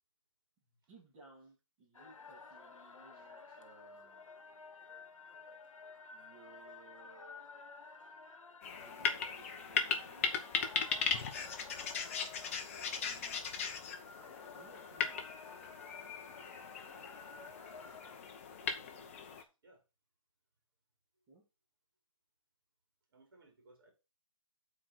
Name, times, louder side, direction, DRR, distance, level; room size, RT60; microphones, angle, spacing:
voice 1, 0.9-4.2 6.1-7.5 8.8-11.7 12.7-13.4 14.5-15.2 21.3-21.4, right 3 dB, 15° right, -6 dB, 2.1 m, -60 dB
sound 1, 1.9-18.2, left 4 dB, 80° left, 1.3 m, -53 dB
voice 2, 3.1-3.6 18.6-19.8 23.1-23.9, right 2 dB, 40° right, 1 dB, 4.6 m, -64 dB
sound 2, 8.6-19.4, left 6 dB, 25° left, 1.0 m, -38 dB
8.3 x 4.6 x 6.3 m, 0.29 s
hypercardioid pair, 170°, 17 cm